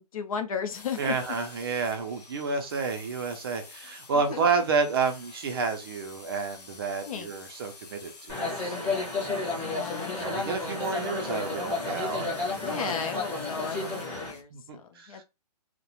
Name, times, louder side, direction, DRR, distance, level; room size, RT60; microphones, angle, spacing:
voice 1, 0.0-1.2 4.1-4.6 7.1-7.3 9.5-10.5 12.6-15.2, left 6 dB, 60° left, 0.5 m, -35 dB
sound 1, 0.7-14.4, left 4 dB, 80° left, 0.9 m, -48 dB
voice 2, 1.0-9.5 10.1-12.9 14.3-15.2, right 5 dB, 35° right, 0.4 m, -30 dB
sound 2, 8.3-14.3, left 3 dB, 10° left, 0.6 m, -32 dB
2.3 x 2.1 x 2.8 m
hypercardioid pair, 155°, 20 cm